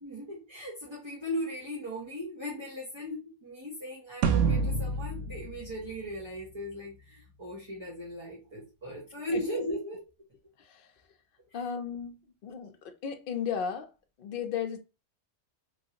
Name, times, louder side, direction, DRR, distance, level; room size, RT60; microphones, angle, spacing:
voice 1, 0.0-10.0, equal, 25° right, 0.8 m, -37 dB
sound 1, 4.2-6.7, right 5 dB, 85° right, 0.9 m, -28 dB
voice 2, 11.5-12.8 13.0-13.9 14.2-14.8, left 7 dB, 55° left, 0.7 m, -35 dB
3.1 x 2.6 x 2.8 m
omnidirectional pair, 1.2 m